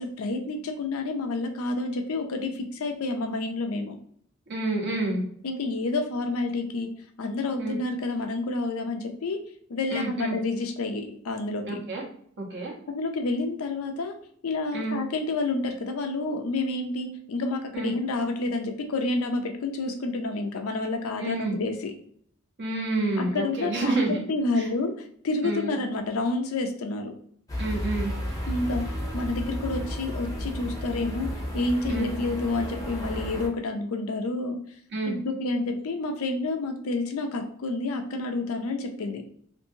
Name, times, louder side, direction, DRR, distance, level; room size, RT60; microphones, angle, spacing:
voice 1, 0.0-4.0 5.4-6.9 7.2-9.4 9.7-11.8 12.9-14.1 14.4-21.9 23.2-27.1 28.5-31.3 31.5-34.6 35.1-39.2, left 2 dB, 70° left, 5 dB, 0.5 m, -29 dB
voice 2, 4.5-5.3 7.6-7.8 9.9-10.4 11.6-12.0 12.4-12.7 14.7-15.0 17.7-17.9 21.2-21.5 22.6-24.2 24.5-24.7 25.4-25.7 27.6-28.1 31.9-32.1 34.9-35.2, right 2 dB, 55° right, -2 dB, 0.9 m, -29 dB
sound 1, 27.5-33.5, equal, 15° left, 0.6 m, -33 dB
2.7 x 2.6 x 2.6 m, 0.64 s
head